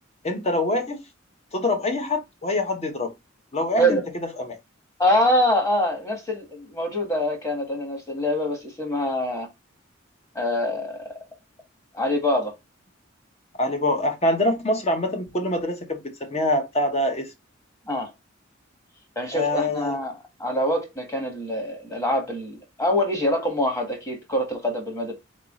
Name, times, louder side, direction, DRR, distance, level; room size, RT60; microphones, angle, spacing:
voice 1, 0.2-1.0 1.5-3.1 3.5-4.6 13.6-17.3 19.3-19.9, left 1 dB, 30° left, 1.0 m, -25 dB
voice 2, 5.0-9.5 10.3-11.1 11.9-12.5 17.9-18.1 19.1-25.1, equal, 15° left, 1.5 m, -25 dB
4.0 x 3.6 x 3.6 m
head